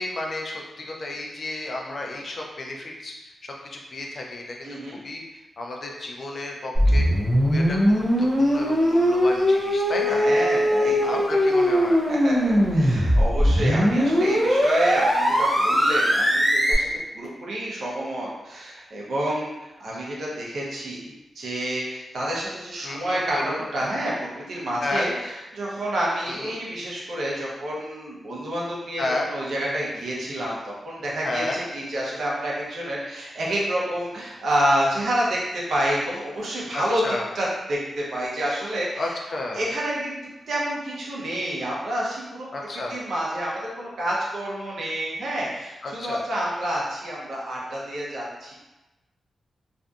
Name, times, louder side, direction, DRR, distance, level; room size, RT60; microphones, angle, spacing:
voice 1, 0.0-3.2 3.4-7.1 7.4-10.2 11.0-12.0 22.8-23.6 24.8-25.1 26.3-26.6 29.0-29.3 31.2-31.6 36.7-37.3 39.0-39.6 42.5-43.0 45.8-46.2, left 2 dB, 40° left, 0 dB, 0.4 m, -32 dB
voice 2, 4.6-5.0 10.1-11.3 12.1-16.9 17.1-37.0 37.3-39.1 39.5-42.5 42.9-48.5, right 1 dB, 70° right, -5 dB, 0.7 m, -28 dB
sound 1, 6.7-16.7, equal, 5° right, 0.5 m, -20 dB
2.5 x 2.5 x 2.3 m, 1.0 s
wide cardioid pair, 170°, 0 cm